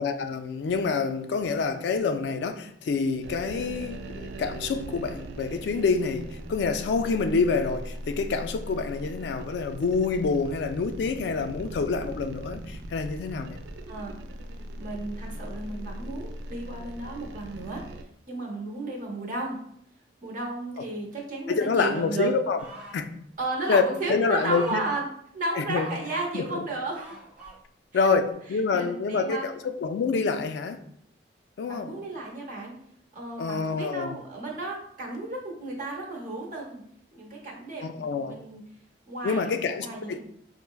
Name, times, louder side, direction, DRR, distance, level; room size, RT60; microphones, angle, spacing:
voice 1, 0.0-13.6 21.5-22.6 22.9-23.1 23.7-23.8 24.1-24.8 25.6-25.9 26.3-26.6 27.9-30.8 31.6-32.0 33.4-34.2 37.8-38.4 39.2-40.2, left 4 dB, 70° left, 0.3 m, -27 dB
sound 1, 3.2-18.0, right 1 dB, 75° right, 0.3 m, -40 dB
voice 2, 13.9-14.2 14.8-17.8 18.3-19.6 20.2-22.3 23.4-25.0 25.3-27.1 27.9-28.1 28.7-29.5 31.7-32.7 33.1-36.8 37.1-38.6 39.1-40.2, right 2 dB, 50° right, 0.7 m, -34 dB
sound 2, 22.6-23.0 23.6-23.8 24.4-25.0 25.7-26.3 26.9-27.6 28.3-28.4, right 2 dB, 5° right, 0.6 m, -42 dB
4.3 x 2.0 x 2.2 m
head